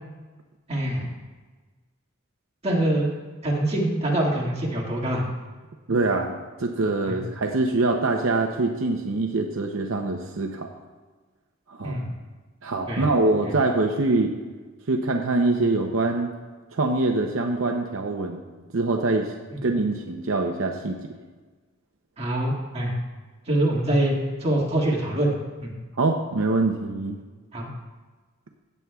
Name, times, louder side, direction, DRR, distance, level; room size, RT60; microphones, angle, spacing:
voice 1, 0.7-1.1 2.6-3.1 3.4-5.3 7.1-7.2 11.8-12.1 12.9-13.1 13.4-13.5 19.5-19.6 22.2-23.0 23.5-24.2 24.4-25.3 25.6-25.7 27.5-27.7, right 1 dB, 30° right, -3 dB, 2.0 m, -24 dB
voice 2, 5.9-6.3 6.6-10.7 11.7-12.0 12.6-14.3 14.9-16.3 16.7-18.4 18.7-19.3 19.6-21.0 26.0-27.2, right 2 dB, 70° right, 3 dB, 0.7 m, -24 dB
16.5 x 8.2 x 2.3 m, 1.3 s
head